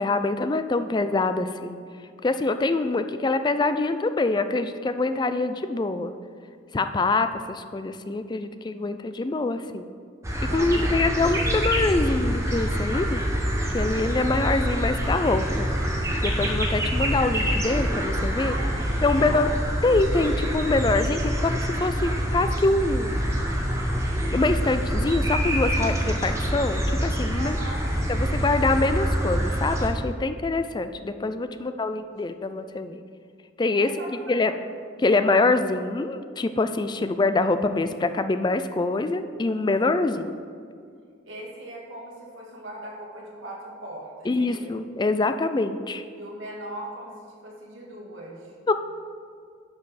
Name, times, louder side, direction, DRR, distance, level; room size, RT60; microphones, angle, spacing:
voice 1, 0.0-1.8 2.2-6.1 6.7-9.9 10.4-13.2 13.7-15.7 16.2-18.5 19.0-19.5 19.8-23.2 24.3-27.6 28.1-33.0 33.6-33.9 34.3-34.5 35.0-40.4 44.3-46.0 48.7-48.8, left 3 dB, 20° left, 10 dB, 0.3 m, -25 dB
sound 1, 10.2-29.9, equal, 15° right, 1.0 m, -26 dB
voice 2, 10.5-11.0 18.5-19.5 27.4-27.9 31.6-32.4 33.8-34.5 41.2-44.7 46.2-47.1 47.4-48.5, right 1 dB, 85° right, -3 dB, 2.2 m, -39 dB
10.5 x 5.5 x 4.1 m, 2.2 s
head